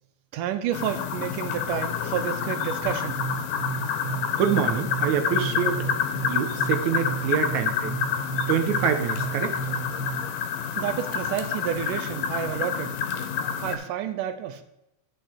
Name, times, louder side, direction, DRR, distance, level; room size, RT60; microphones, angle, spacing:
voice 1, 0.3-3.2 10.8-13.0 13.6-14.6, right 9 dB, 90° right, 10 dB, 2.3 m, -30 dB
sound 1, 0.7-13.8, left 7 dB, 85° left, 2.5 m, -28 dB
sound 2, 2.8-10.4, right 7 dB, 50° right, 2.6 m, -34 dB
voice 2, 4.4-5.9 6.3-8.0 8.5-9.6, right 8 dB, 70° right, 8 dB, 2.1 m, -26 dB
10.0 x 6.6 x 4.3 m, 0.86 s
omnidirectional pair, 3.7 m